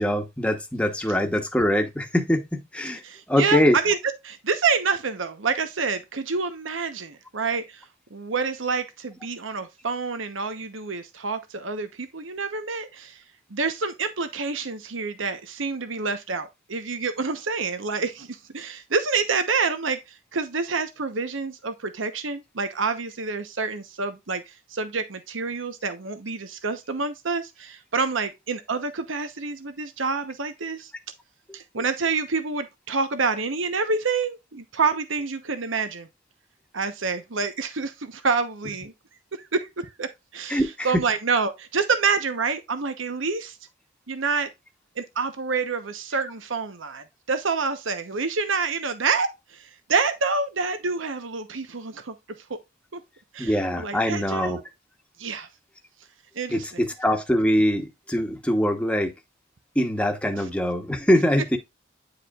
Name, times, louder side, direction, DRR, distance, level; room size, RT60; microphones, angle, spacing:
voice 1, 0.0-3.0 3.3-3.8 40.5-40.9 53.4-54.6 56.5-59.1 59.7-61.6, equal, 5° left, 1.1 m, -23 dB
voice 2, 3.0-4.0 4.2-7.8 8.1-13.2 13.5-30.9 31.5-36.1 36.7-38.9 39.3-43.6 44.1-44.5 45.0-52.1 52.5-52.6 52.9-53.0 53.3-54.6 55.2-55.5 56.3-56.8 60.4-60.5, right 4 dB, 80° right, 1.0 m, -27 dB
9.6 x 4.9 x 2.4 m
head